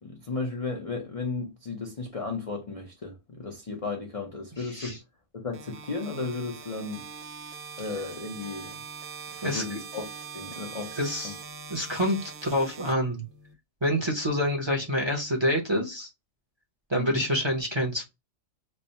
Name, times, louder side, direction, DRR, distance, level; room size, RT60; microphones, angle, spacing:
voice 1, 0.0-5.0 5.3-7.1 7.8-8.8 9.4-10.1 10.3-11.0 11.2-11.3 16.9-17.2, left 3 dB, 45° left, 0.5 m, -34 dB
voice 2, 4.6-5.0 9.4-9.8 11.0-11.4 11.7-13.2 13.8-16.1 16.9-18.0, equal, 25° right, 0.7 m, -27 dB
sound 1, 5.5-13.5, right 5 dB, 80° right, 1.1 m, -42 dB
3.3 x 2.1 x 4.0 m
omnidirectional pair, 1.4 m